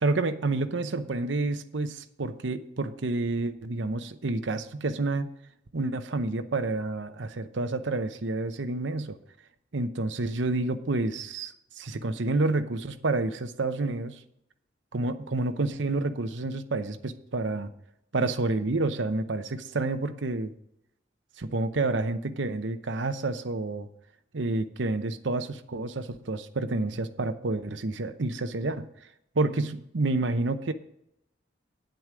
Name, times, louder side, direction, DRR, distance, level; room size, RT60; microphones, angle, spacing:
voice 1, 0.0-5.3 5.7-9.2 9.7-14.2 14.9-17.7 18.1-20.5 21.4-23.9 24.3-28.9 29.3-30.7, right 2 dB, 75° right, 9 dB, 0.8 m, -29 dB
9.8 x 7.8 x 4.9 m, 0.77 s
head